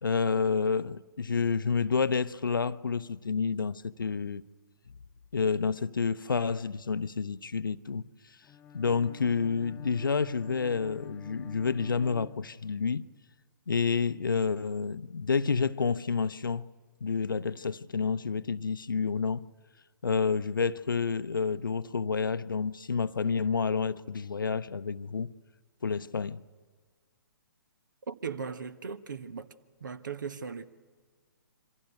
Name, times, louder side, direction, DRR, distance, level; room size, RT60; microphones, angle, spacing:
voice 1, 0.0-4.4 5.3-8.0 8.7-13.1 13.7-16.7 17.0-19.5 20.0-25.3 25.8-26.4, left 5 dB, 70° left, 0.8 m, -29 dB
Bowed string instrument, 8.4-13.0, left 4 dB, 15° left, 0.7 m, -49 dB
voice 2, 28.1-29.5 29.8-30.7, right 6 dB, 60° right, 1.5 m, -38 dB
27.5 x 25.0 x 8.3 m
figure-of-eight pair, 125°, 11 cm